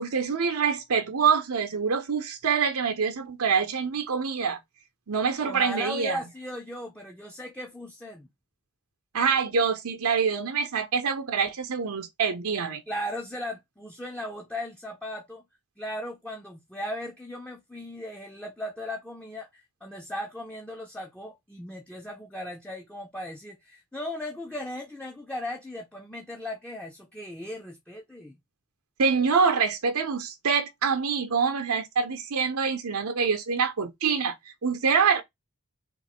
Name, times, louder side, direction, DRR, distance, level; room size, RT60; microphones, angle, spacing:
voice 1, 0.0-4.6 5.1-6.2 9.1-12.8 29.0-35.2, right 6 dB, 80° right, 0.7 m, -25 dB
voice 2, 5.4-8.3 12.9-15.4 15.8-28.4, left 1 dB, 5° left, 0.5 m, -37 dB
3.7 x 2.5 x 4.2 m
head